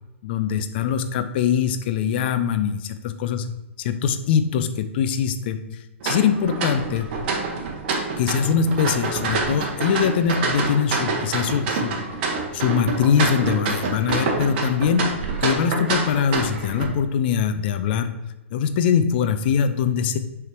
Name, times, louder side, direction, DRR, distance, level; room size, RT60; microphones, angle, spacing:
voice 1, 0.2-3.5 3.8-5.6 6.0-7.1 8.2-12.0 12.5-15.1 15.4-18.1 18.5-20.2, left 7 dB, 50° left, 10 dB, 0.6 m, -22 dB
sound 1, 6.0-16.8, right 4 dB, 50° right, 1.3 m, -26 dB
6.5 x 3.5 x 4.7 m, 1.0 s
hypercardioid pair, 115°, 7 cm